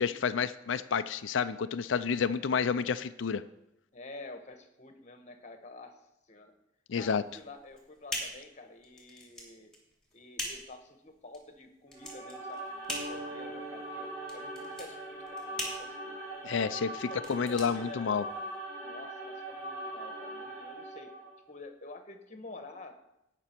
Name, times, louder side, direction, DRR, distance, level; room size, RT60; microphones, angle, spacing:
voice 1, 0.0-3.4 6.9-7.2 16.4-18.2, left 6 dB, 75° left, 12 dB, 0.4 m, -30 dB
voice 2, 3.9-6.5 6.9-9.7 10.1-16.2 17.1-18.2 18.8-21.2 21.5-23.0, left 2 dB, 40° left, 7 dB, 1.2 m, -49 dB
sound 1, 7.3-18.6, left 1 dB, 5° left, 2.5 m, -42 dB
sound 2, 11.9-21.4, right 1 dB, 15° right, 3.5 m, -42 dB
sound 3, 12.9-18.0, right 2 dB, 60° right, 2.7 m, -48 dB
18.0 x 6.0 x 4.5 m, 0.84 s
head